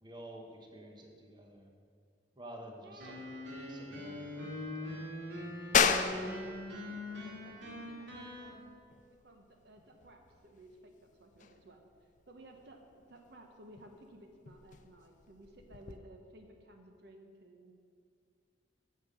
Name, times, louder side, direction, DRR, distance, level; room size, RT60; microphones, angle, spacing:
voice 1, 0.0-1.7 2.4-3.2 3.6-4.5 4.8-5.2, right 1 dB, 25° right, 2 dB, 0.9 m, -51 dB
voice 2, 2.8-3.4 6.0-8.8 9.1-11.8 12.3-17.7, right 1 dB, 60° right, 4 dB, 0.9 m, -56 dB
sound 1, 3.0-8.5, left 1 dB, 80° right, 2.1 m, -42 dB
sound 2, 5.7-16.0, left 6 dB, 45° left, 0.4 m, -36 dB
9.0 x 6.6 x 6.5 m, 2.2 s
head